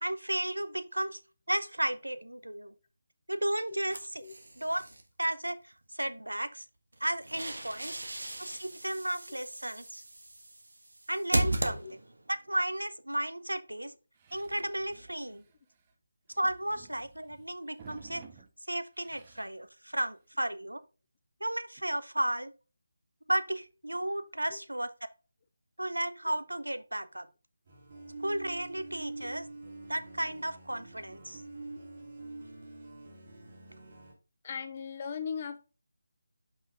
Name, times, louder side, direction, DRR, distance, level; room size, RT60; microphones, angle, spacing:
voice 1, 0.0-1.2 1.5-2.7 3.3-4.2 4.6-4.8 5.2-6.6 7.0-7.9 8.4-10.0 11.1-11.9 12.3-13.9 14.3-15.4 16.4-18.2 18.7-20.8 21.4-22.5 23.3-24.9 25.8-27.3 28.2-29.5 29.9-31.4, right 1 dB, 90° right, 0.7 m, -33 dB
sound 1, 3.9-5.0 6.9-12.3, right 1 dB, 75° right, 1.3 m, -36 dB
sound 2, 14.2-15.9 16.3-18.5 18.9-19.6 20.0-20.1 20.4-20.5 21.8-21.9, right 6 dB, 25° right, 0.7 m, -54 dB
sound 3, 27.7-34.1, right 2 dB, 45° right, 2.2 m, -46 dB
voice 2, 34.4-35.7, left 6 dB, 35° left, 0.5 m, -38 dB
5.5 x 5.4 x 3.6 m
figure-of-eight pair, 155°, 0 cm